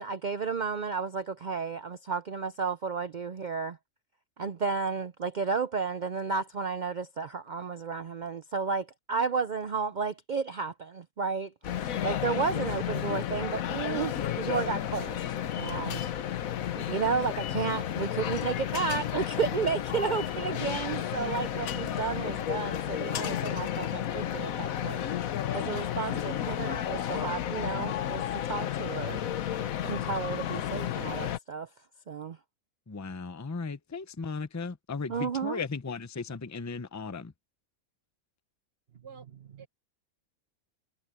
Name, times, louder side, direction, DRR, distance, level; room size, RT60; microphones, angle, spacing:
voice 1, 0.0-3.8 4.4-15.2 15.5-16.1 16.8-25.0 25.5-29.2 29.8-31.7 32.1-32.4 35.1-35.6, right 5 dB, 80° right, 0.4 m, -32 dB
sound 1, 11.6-31.4, left 10 dB, 70° left, 1.3 m, -32 dB
voice 2, 32.9-37.3, left 4 dB, 25° left, 0.4 m, -36 dB
voice 3, 38.9-39.7, right 7 dB, 45° right, 1.5 m, -48 dB
omnidirectional pair, 1.5 m